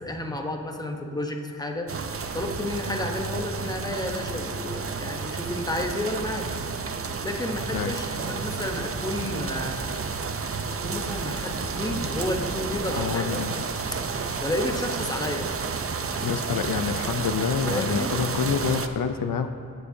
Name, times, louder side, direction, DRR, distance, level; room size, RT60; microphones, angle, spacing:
voice 1, 0.0-1.9 2.3-6.5 7.0-10.0 10.8-13.5 14.4-15.5 17.7-18.1, left 1 dB, 10° left, 3 dB, 0.9 m, -31 dB
sound 1, 1.9-18.9, right 5 dB, 40° right, 0.6 m, -31 dB
voice 2, 13.0-13.5 16.2-19.5, left 6 dB, 70° left, 8 dB, 0.5 m, -27 dB
13.5 x 9.6 x 2.8 m, 2.7 s
wide cardioid pair, 85°, 35 cm